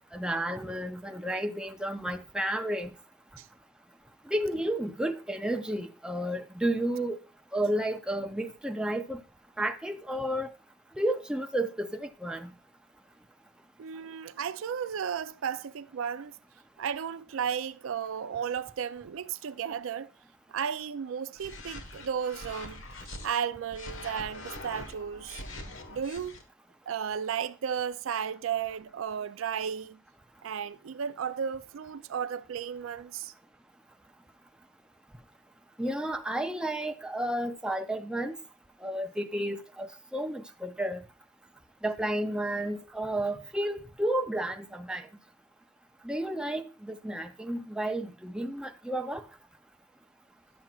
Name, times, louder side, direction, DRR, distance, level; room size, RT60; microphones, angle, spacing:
voice 1, 0.1-2.9 4.3-7.2 7.5-9.2 9.6-10.5 11.0-12.5 35.8-38.4 38.8-41.0 41.8-45.1 46.0-49.2, right 1 dB, 5° right, 0.5 m, -32 dB
voice 2, 13.8-16.4 16.8-20.1 20.5-22.8 23.2-25.4 25.9-26.4 26.9-30.0 30.4-33.3, right 7 dB, 90° right, 0.4 m, -34 dB
sound 1, 21.4-23.3 23.7-26.4, left 2 dB, 85° left, 1.3 m, -43 dB
11.0 x 7.3 x 2.4 m
head